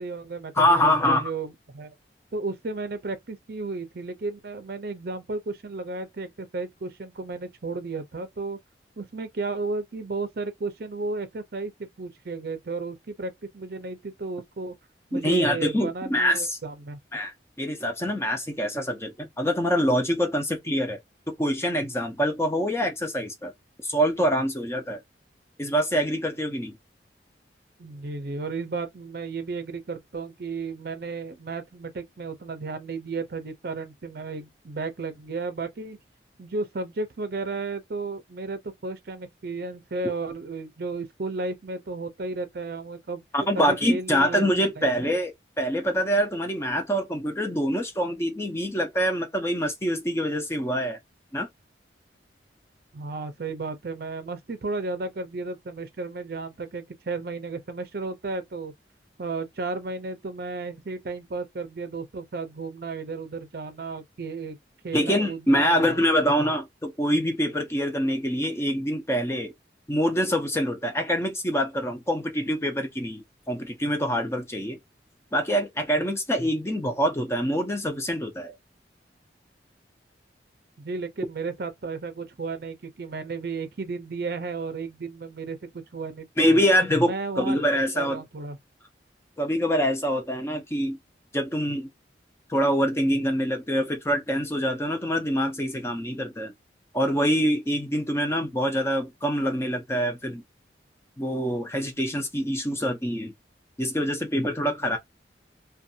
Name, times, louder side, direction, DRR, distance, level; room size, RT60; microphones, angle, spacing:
voice 1, 0.0-1.9 2.3-8.6 9.0-14.7 15.1-17.0 27.8-36.0 36.4-43.2 43.5-45.1 52.9-58.7 59.2-64.6 64.8-66.0 80.8-86.6 87.0-88.6, right 3 dB, 55° right, 0.5 m, -33 dB
voice 2, 0.6-1.3 15.1-16.6 17.1-21.0 21.3-23.5 23.8-25.0 25.6-26.7 43.3-51.0 51.3-51.5 64.9-69.5 69.9-74.8 75.3-78.5 86.4-88.2 89.4-91.0 91.3-91.9 92.5-96.5 96.9-100.4 101.2-103.3 103.8-105.0, equal, 15° left, 0.5 m, -25 dB
2.5 x 2.3 x 2.7 m
head